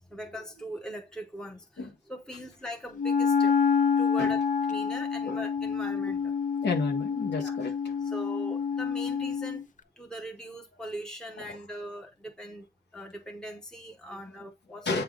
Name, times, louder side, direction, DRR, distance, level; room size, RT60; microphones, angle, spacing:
voice 1, 0.0-3.6 4.0-6.3 7.4-7.6 8.0-9.7 10.0-12.7 12.9-15.0, equal, 5° left, 0.9 m, -41 dB
Wind instrument woodwind instrument, 3.0-9.6, left 6 dB, 50° left, 0.7 m, -27 dB
voice 2, 6.6-7.9 11.4-11.6 14.8-15.0, left 3 dB, 85° left, 1.7 m, -31 dB
8.0 x 3.4 x 3.8 m
wide cardioid pair, 105°, 17 cm